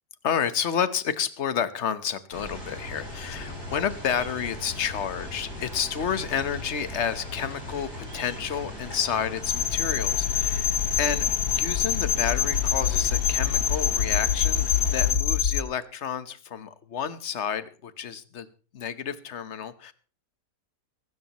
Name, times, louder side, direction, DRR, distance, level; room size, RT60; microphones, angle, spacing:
voice 1, 0.2-18.5 18.7-19.9, left 8 dB, 50° left, 13 dB, 1.3 m, -30 dB
sound 1, 2.3-15.1, left 1 dB, 85° left, 7.7 m, -38 dB
sound 2, 9.4-15.6, left 8 dB, 65° left, 1.4 m, -25 dB
22.5 x 12.5 x 3.0 m, 0.38 s
omnidirectional pair, 1.7 m